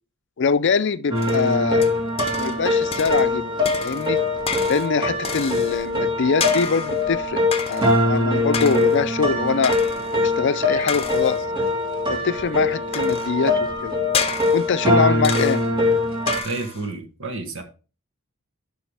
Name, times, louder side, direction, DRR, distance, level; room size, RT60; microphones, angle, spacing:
voice 1, 0.4-1.9 2.4-3.5 3.8-4.2 4.7-7.4 7.7-9.8 10.1-11.4 12.1-14.0 14.5-15.6, left 5 dB, 55° left, 0.5 m, -23 dB
LP-Piano-Glass-Phone, 1.1-16.4, left 2 dB, 20° right, 1.9 m, -22 dB
sound 1, 1.2-2.6 2.9-3.4 3.6-5.9 6.4-7.1 7.5-8.1 8.5-9.1 9.6-10.2 10.9-11.5 12.9-13.5 14.1-14.8 15.2-15.8 16.3-16.9, left 5 dB, 25° left, 0.9 m, -30 dB
voice 2, 16.4-17.6, right 3 dB, 60° right, 1.4 m, -30 dB
11.5 x 5.5 x 3.4 m
head